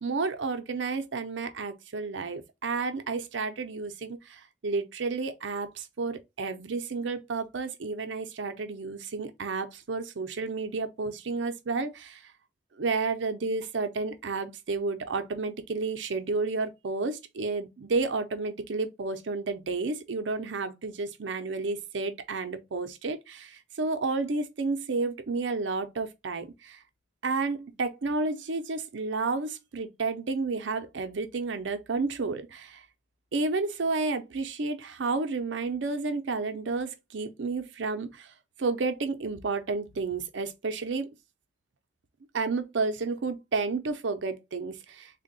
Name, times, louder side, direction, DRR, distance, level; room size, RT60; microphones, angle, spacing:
voice 1, 0.0-12.2 12.8-26.8 27.2-32.8 33.3-38.3 38.6-41.1 42.3-45.2, right 3 dB, 85° right, 0.6 m, -31 dB
3.4 x 2.2 x 3.9 m
head